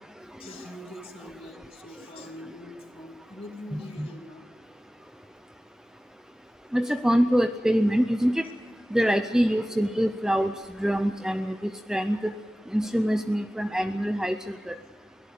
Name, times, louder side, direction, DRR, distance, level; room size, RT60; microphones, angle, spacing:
voice 1, 0.4-4.4 6.8-6.9 8.4-8.5, left 1 dB, 30° left, 2 dB, 2.9 m, -43 dB
voice 2, 3.7-4.1 6.7-8.4 8.9-10.5 10.8-11.5 11.9-12.2 12.7-14.7, equal, 5° right, 9 dB, 0.5 m, -24 dB
22.5 x 17.5 x 6.7 m, 1.5 s
head